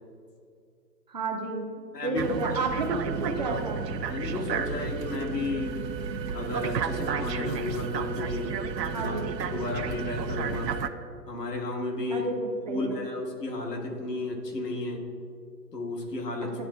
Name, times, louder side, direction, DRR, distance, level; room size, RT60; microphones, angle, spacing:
voice 1, 1.1-1.6 2.0-3.8 8.9-9.3 12.1-13.0, right 3 dB, 25° right, 1 dB, 0.6 m, -31 dB
voice 2, 1.9-2.2 4.0-5.8 6.3-8.5 8.9-9.1 9.5-10.7 11.3-12.3 12.7-15.0 15.7-16.5, left 2 dB, 75° left, 0 dB, 1.5 m, -33 dB
sound 1, 2.2-10.9, right 6 dB, 80° right, 0.6 m, -32 dB
10.5 x 4.1 x 2.2 m, 2.4 s
figure-of-eight pair, 130°, 49 cm